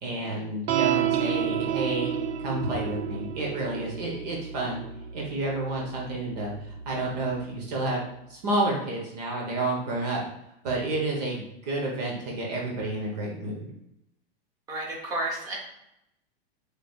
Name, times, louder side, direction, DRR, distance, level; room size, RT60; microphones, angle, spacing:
voice 1, 0.0-2.1 2.4-4.8 5.1-6.5 6.9-8.0 8.3-10.2 10.6-13.7, right 2 dB, 45° right, -1 dB, 0.9 m, -30 dB
sound 1, 0.7-7.3, right 9 dB, 85° right, 0.5 m, -31 dB
voice 2, 14.7-15.5, right 1 dB, 10° right, -2 dB, 0.6 m, -31 dB
4.7 x 3.4 x 2.4 m, 0.81 s
supercardioid pair, 170°, 30 cm